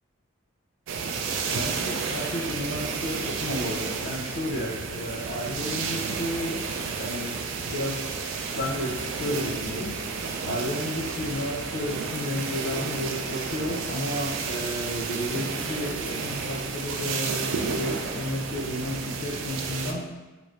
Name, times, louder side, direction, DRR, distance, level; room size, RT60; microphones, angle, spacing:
sound 1, 0.9-19.9, right 5 dB, 75° right, 0.3 m, -31 dB
voice 1, 1.5-6.7 7.0-8.1 8.6-10.0 10.4-20.1, left 1 dB, 55° left, -1 dB, 0.4 m, -32 dB
3.2 x 2.5 x 3.1 m, 1.2 s
head